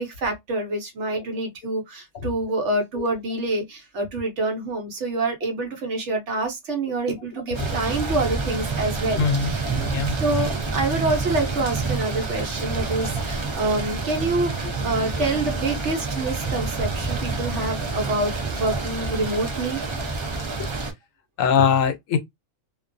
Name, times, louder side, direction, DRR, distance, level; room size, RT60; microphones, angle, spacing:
voice 1, 0.0-9.7 10.2-19.8, right 2 dB, 65° right, 1.0 m, -27 dB
sound 1, 7.5-20.9, right 3 dB, 45° right, 0.4 m, -28 dB
voice 2, 9.2-9.5 9.8-10.2 20.6-20.7 21.4-22.2, left 7 dB, 80° left, 1.0 m, -21 dB
2.5 x 2.2 x 2.5 m
omnidirectional pair, 1.3 m